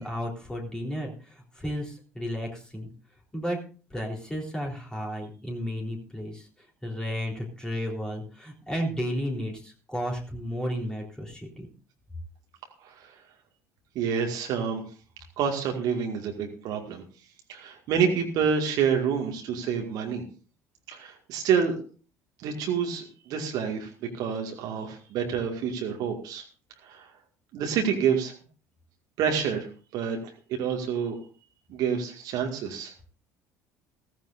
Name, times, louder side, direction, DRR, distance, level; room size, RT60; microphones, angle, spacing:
voice 1, 0.0-2.9 3.3-3.6 3.9-6.5 6.8-11.7, equal, 10° left, -1 dB, 3.8 m, -33 dB
voice 2, 14.0-14.8 15.4-17.0 17.5-20.2 20.9-21.8 22.4-23.9 24.1-26.4 26.8-27.1 27.5-28.3 29.2-29.7 29.9-30.2 30.5-31.1 31.7-32.9, right 7 dB, 50° right, 2 dB, 2.1 m, -28 dB
16.0 x 15.0 x 2.7 m, 0.38 s
figure-of-eight pair, 60°, 8 cm